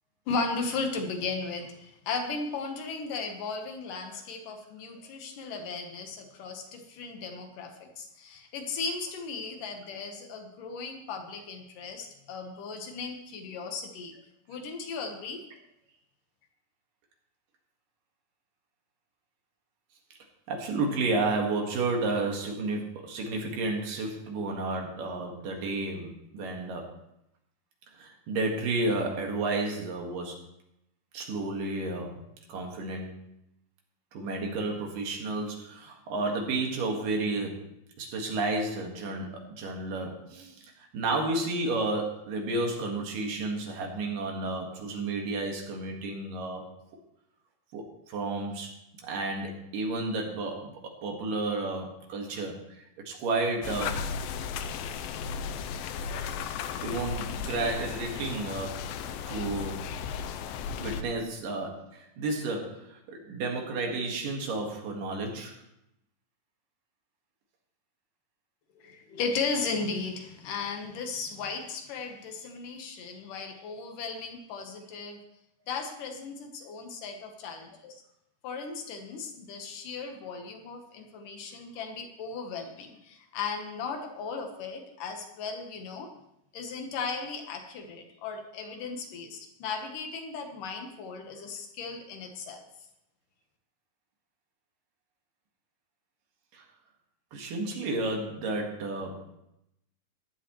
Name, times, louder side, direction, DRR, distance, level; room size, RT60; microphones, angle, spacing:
voice 1, 0.3-14.1 14.5-15.4 68.8-75.2 75.7-77.9 78.4-86.1 86.5-92.6, left 4 dB, 70° left, 4 dB, 2.8 m, -36 dB
voice 2, 20.5-26.9 28.0-30.4 31.1-32.2 32.5-33.1 34.1-37.7 38.0-46.6 47.7-48.7 49.0-54.0 56.8-58.8 59.3-59.9 60.8-65.6 96.5-96.6 97.3-99.2, right 2 dB, 70° right, 1 dB, 3.3 m, -32 dB
sound 1, 53.6-61.0, left 6 dB, 85° left, 2.3 m, -35 dB
15.5 x 11.0 x 3.1 m, 0.82 s
omnidirectional pair, 4.0 m